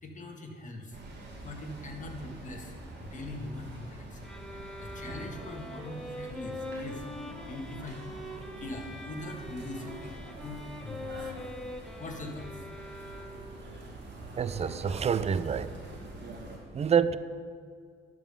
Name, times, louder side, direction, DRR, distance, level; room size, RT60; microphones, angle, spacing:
voice 1, 0.0-7.1 7.4-11.5 11.8-12.7, left 2 dB, 40° left, 2 dB, 1.6 m, -42 dB
sound 1, 0.9-16.6, right 2 dB, 60° right, 2.4 m, -46 dB
sound 2, 4.2-13.7, left 1 dB, 5° left, 1.2 m, -43 dB
voice 2, 14.3-15.8 16.7-17.2, right 7 dB, 35° right, 14 dB, 0.4 m, -27 dB
11.0 x 5.2 x 6.8 m, 2.1 s
cardioid pair, 90°, 20 cm